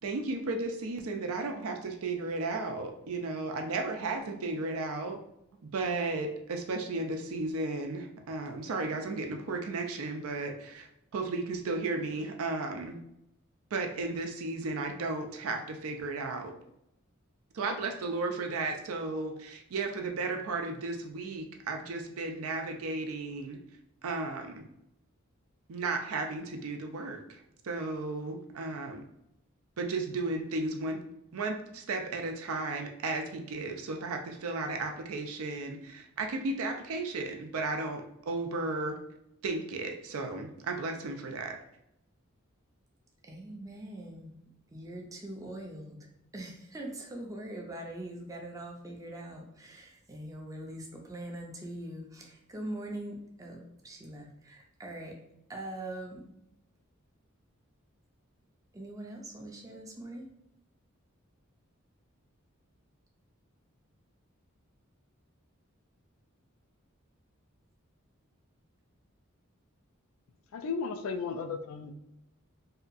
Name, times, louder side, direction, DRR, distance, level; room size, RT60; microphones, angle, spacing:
voice 1, 0.0-5.2 5.7-13.0 13.7-16.5 17.5-23.6 24.0-24.7 25.7-29.0 29.8-31.0 31.3-39.0 39.4-41.6, right 3 dB, 85° right, 4 dB, 0.4 m, -34 dB
voice 2, 43.2-44.3 44.7-46.0 46.3-55.2 55.5-56.2 58.7-60.2, right 1 dB, 15° right, 0 dB, 0.4 m, -42 dB
voice 3, 70.5-71.9, left 5 dB, 80° left, 7 dB, 0.3 m, -34 dB
2.7 x 2.3 x 2.5 m, 0.81 s
head